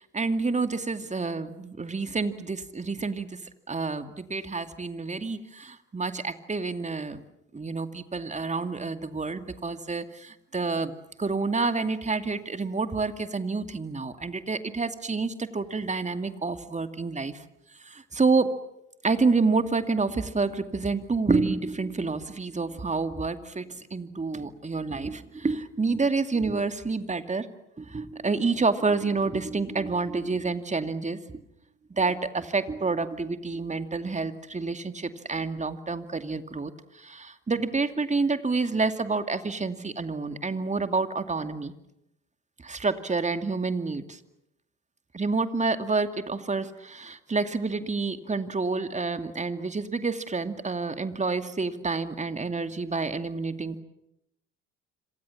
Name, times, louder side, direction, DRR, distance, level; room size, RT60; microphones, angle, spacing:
voice 1, 0.0-3.4 3.7-7.2 7.5-10.9 11.2-17.4 17.8-18.5 19.0-27.5 27.8-31.4 31.9-41.7 42.6-44.2 45.1-53.8, right 4 dB, 20° right, 9 dB, 2.5 m, -28 dB
27.5 x 26.5 x 7.3 m, 0.83 s
hypercardioid pair, 65°, 36 cm